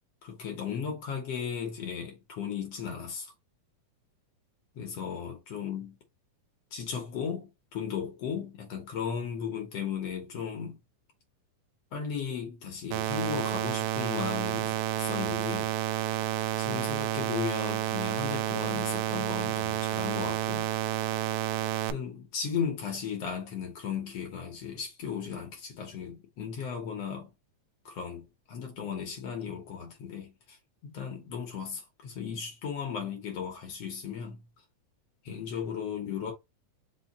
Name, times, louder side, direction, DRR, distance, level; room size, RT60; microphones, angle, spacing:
voice 1, 0.2-3.3 4.7-6.0 6.7-10.8 11.9-15.7 16.6-20.7 21.9-27.3 27.8-30.6 30.8-34.4 35.2-36.3, left 7 dB, 70° left, 1.5 m, -36 dB
sound 1, 12.9-21.9, right 13 dB, 80° right, 1.9 m, -30 dB
5.5 x 2.1 x 4.0 m
omnidirectional pair, 4.1 m